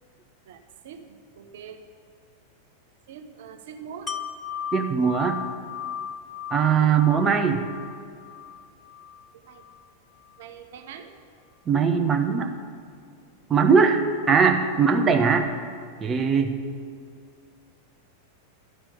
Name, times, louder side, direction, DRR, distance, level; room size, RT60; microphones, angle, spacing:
voice 1, 1.4-1.8 3.1-4.1 6.8-6.9 9.5-9.6 10.4-11.1, right 7 dB, 55° right, 7 dB, 0.9 m, -42 dB
Wind chime, 4.1-9.9 10.3-10.4, left 8 dB, 15° left, 0.6 m, -37 dB
voice 2, 4.7-5.4 6.5-7.6 11.7-12.5 13.5-15.5 16.0-16.6, right 6 dB, 20° right, 5 dB, 1.0 m, -20 dB
12.0 x 6.1 x 8.4 m, 2.3 s
figure-of-eight pair, 90°, 0 cm